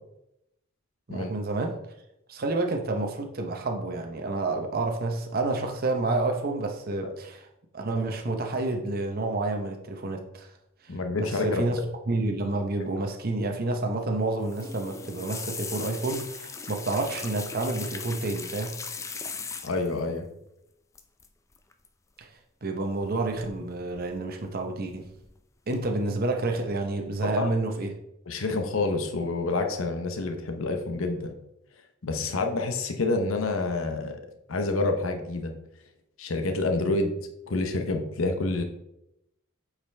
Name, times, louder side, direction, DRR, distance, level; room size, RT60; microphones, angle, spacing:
voice 1, 1.1-1.8 2.3-7.5 7.7-10.5 10.8-11.8 12.1-18.7 22.2-22.3 22.6-25.1 25.7-27.9, right 2 dB, 45° right, 3 dB, 0.7 m, -29 dB
voice 2, 10.9-11.7 12.8-12.9 19.6-20.3 27.2-27.5 28.3-31.3 32.0-34.2 34.5-35.5 36.2-37.1 37.5-38.6, left 3 dB, 75° left, 5 dB, 0.8 m, -28 dB
sound 1, 14.4-20.0 21.0-21.3 21.5-21.9 23.0-23.6 23.9-24.5 24.9-25.3 25.7-25.8, left 5 dB, 15° left, 0.4 m, -39 dB
8.5 x 4.9 x 3.3 m, 0.84 s
head